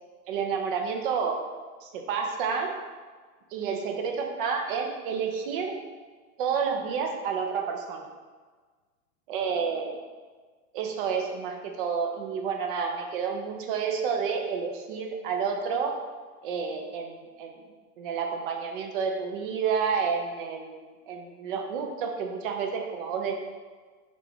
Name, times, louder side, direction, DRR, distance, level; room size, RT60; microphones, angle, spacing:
voice 1, 0.3-1.4 1.8-2.7 3.5-5.7 6.4-8.1 9.3-10.0 10.7-15.9 16.4-17.5 18.0-20.8 21.1-23.4, right 6 dB, 35° right, 3 dB, 0.5 m, -30 dB
4.7 x 2.5 x 3.4 m, 1.4 s
hypercardioid pair, 120°, 47 cm